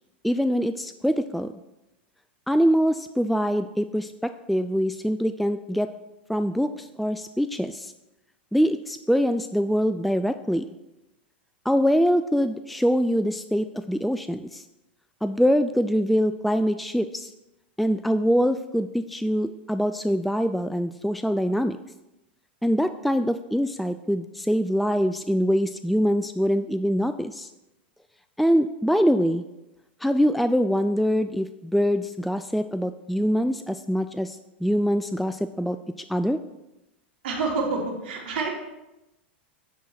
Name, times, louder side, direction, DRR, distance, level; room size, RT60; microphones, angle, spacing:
voice 1, 0.2-1.5 2.5-5.9 6.3-7.9 8.5-10.6 11.7-14.6 15.2-17.3 17.8-21.8 22.6-27.5 28.4-29.4 30.0-35.8 36.1-36.4, equal, ahead, 10 dB, 0.3 m, -24 dB
voice 2, 37.2-38.5, right 3 dB, 70° right, -4 dB, 2.5 m, -27 dB
10.0 x 3.8 x 5.8 m, 0.95 s
figure-of-eight pair, 95°, 6 cm